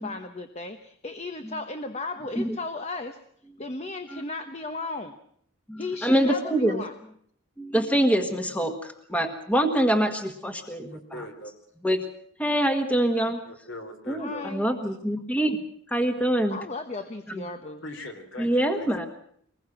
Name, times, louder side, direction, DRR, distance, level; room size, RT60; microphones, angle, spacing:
voice 1, 0.0-3.2 3.6-5.1 5.8-6.9 14.2-14.6 16.5-17.9, left 3 dB, 30° left, 8 dB, 1.0 m, -35 dB
voice 2, 5.7-6.8 7.6-11.2 11.8-12.0 12.4-13.4 14.1-15.6 15.9-16.6 17.3-17.5 18.4-19.1, right 1 dB, 5° left, 6 dB, 1.5 m, -25 dB
voice 3, 10.9-11.5 13.5-14.5 17.8-19.1, left 1 dB, 60° left, 6 dB, 3.7 m, -41 dB
23.5 x 20.5 x 6.0 m, 0.66 s
head